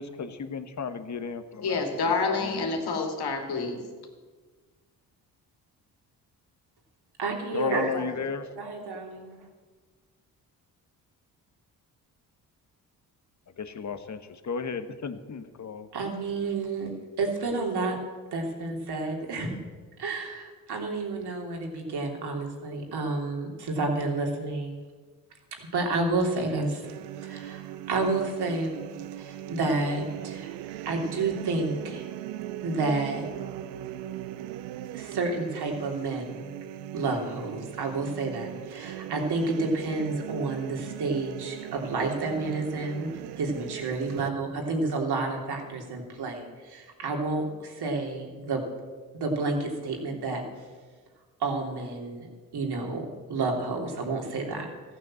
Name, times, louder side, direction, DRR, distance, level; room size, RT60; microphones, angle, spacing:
voice 1, 0.0-2.5 7.5-8.5 13.6-15.9, left 5 dB, 40° left, 10 dB, 1.4 m, -34 dB
voice 2, 1.6-3.8, left 4 dB, 65° left, 3 dB, 2.9 m, -28 dB
voice 3, 7.2-8.1 8.6-9.4 15.9-16.9 17.2-18.0 18.3-19.5 20.0-24.8 25.7-26.9 27.2-28.8 29.2-30.6 30.8-32.0 32.6-33.3 34.9-36.4 36.9-43.1 43.4-48.6 49.2-50.4 51.4-52.3 52.5-54.6, right 3 dB, 65° right, 1 dB, 3.4 m, -30 dB
sound 1, 26.8-44.3, right 13 dB, 85° right, 0.7 m, -39 dB
14.5 x 9.2 x 7.6 m, 1.4 s
supercardioid pair, 60°, 41 cm